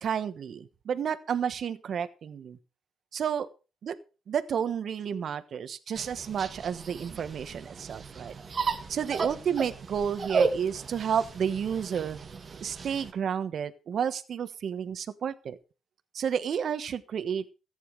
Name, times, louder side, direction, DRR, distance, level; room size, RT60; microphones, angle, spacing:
voice 1, 0.0-2.6 3.1-3.5 3.8-3.9 4.3-8.3 8.9-12.2 12.6-15.6 16.1-17.4, right 8 dB, 60° right, 13 dB, 1.2 m, -31 dB
sound 1, 5.9-13.1, right 4 dB, 40° right, 2.1 m, -34 dB
14.0 x 9.5 x 5.1 m, 0.33 s
cardioid pair, 90°, 0 cm